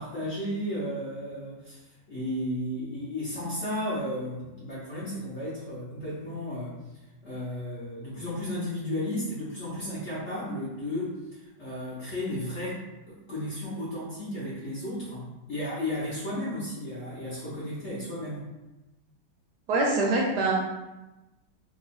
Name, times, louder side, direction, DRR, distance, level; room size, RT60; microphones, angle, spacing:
voice 1, 0.0-1.8 2.1-6.8 7.2-11.2 11.6-12.8 13.1-18.5, left 1 dB, 55° left, -9 dB, 0.8 m, -33 dB
voice 2, 19.7-20.5, right 2 dB, 70° right, -2 dB, 1.0 m, -24 dB
3.0 x 2.3 x 4.1 m, 1.0 s
omnidirectional pair, 2.1 m